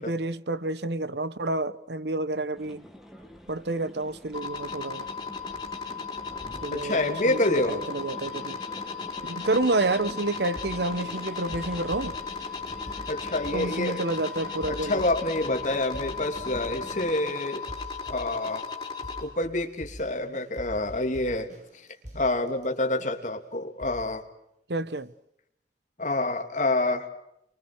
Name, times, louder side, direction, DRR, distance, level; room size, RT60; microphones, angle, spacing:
voice 1, 0.0-2.9 3.5-5.1 6.6-8.6 9.3-12.2 13.5-15.0 24.7-25.1, right 2 dB, 70° right, 1.1 m, -29 dB
sound 1, 2.5-17.2, equal, ahead, 2.6 m, -46 dB
sound 2, 4.3-19.2, left 5 dB, 25° left, 5.0 m, -36 dB
voice 2, 6.7-7.8 13.1-14.0 14.7-17.6 18.1-18.6 19.2-21.5 22.1-24.2 26.0-27.1, left 2 dB, 45° left, 3.1 m, -27 dB
sound 3, 10.1-23.4 23.8-24.2 25.0-25.1, equal, 40° right, 7.6 m, -46 dB
28.5 x 23.5 x 6.3 m
head